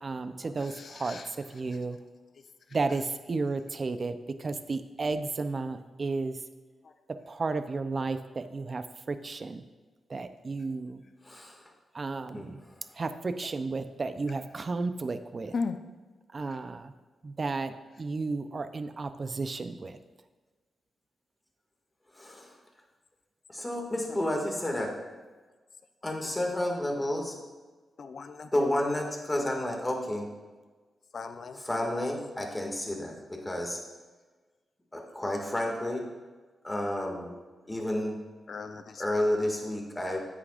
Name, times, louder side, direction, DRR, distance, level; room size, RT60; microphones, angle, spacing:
voice 1, 0.0-0.7 1.0-1.2 1.5-2.0 2.7-4.2 4.4-6.4 7.3-9.6 10.1-11.0 11.9-12.6 13.0-15.5 16.3-16.9 17.2-19.9, right 3 dB, 45° right, 10 dB, 0.6 m, -33 dB
voice 2, 0.7-1.3 15.5-15.8 28.0-28.5 31.1-31.6 38.5-38.8, left 4 dB, 60° left, 9 dB, 0.6 m, -36 dB
voice 3, 11.2-11.6 12.3-12.5 22.2-22.5 23.6-24.9 26.0-27.4 28.5-30.3 31.5-33.8 34.9-36.0 36.6-37.3 37.7-38.2 39.0-40.2, left 1 dB, 20° left, 1 dB, 2.1 m, -30 dB
10.0 x 8.3 x 2.5 m, 1.3 s
cardioid pair, 60°, 0 cm